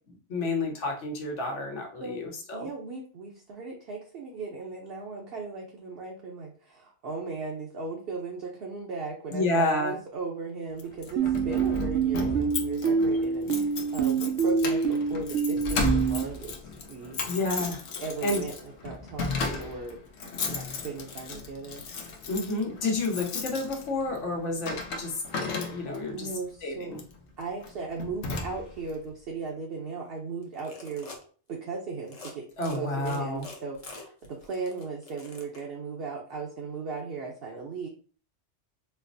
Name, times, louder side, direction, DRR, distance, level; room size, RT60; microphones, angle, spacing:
voice 1, 0.3-2.7 9.3-9.9 17.3-17.8 18.2-18.4 22.3-26.3 26.6-27.0 32.6-33.5, left 2 dB, 90° left, 1 dB, 1.2 m, -30 dB
voice 2, 2.5-17.2 18.0-21.8 26.1-26.9 27.4-31.1 31.5-37.9, right 4 dB, 60° right, -1 dB, 0.8 m, -37 dB
Keys jangling, 10.8-26.1 26.9-27.2 27.6-27.7 28.0-28.9, left 3 dB, 70° left, 0.9 m, -35 dB
sound 1, 11.2-16.2, right 5 dB, 90° right, 0.9 m, -26 dB
sound 2, 30.4-31.2 32.0-32.3 32.6-35.6, left 3 dB, 40° left, 0.6 m, -45 dB
4.2 x 2.0 x 2.6 m, 0.42 s
omnidirectional pair, 1.2 m